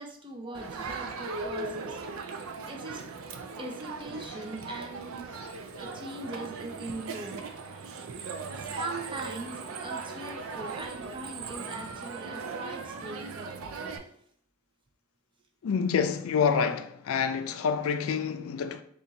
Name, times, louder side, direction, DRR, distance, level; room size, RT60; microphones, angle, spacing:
voice 1, 0.0-2.1 2.7-3.0 3.6-5.3 5.7-7.5 8.6-14.1, right 2 dB, 25° right, 0.6 m, -41 dB
Crowd, 0.5-14.0, right 4 dB, 70° right, 0.5 m, -38 dB
voice 2, 15.6-18.8, left 6 dB, 70° left, 0.4 m, -27 dB
4.3 x 2.4 x 3.9 m
head